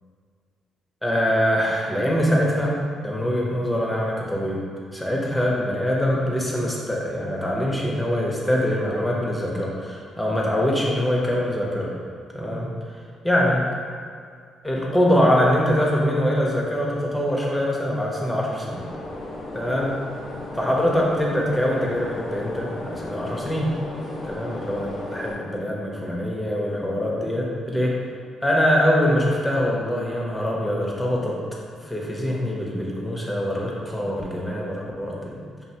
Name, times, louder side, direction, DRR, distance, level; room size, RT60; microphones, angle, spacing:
voice 1, 1.0-2.7 3.0-4.6 4.9-11.9 12.3-12.7 13.2-13.6 14.6-18.8 19.5-20.0 20.5-23.7 24.2-27.9 28.4-31.4 31.8-35.6, equal, 10° left, -3 dB, 0.8 m, -23 dB
sound 1, 18.6-25.3, left 1 dB, 55° left, 0.7 m, -35 dB
5.5 x 2.6 x 2.8 m, 2.1 s
cardioid pair, 90°, 0 cm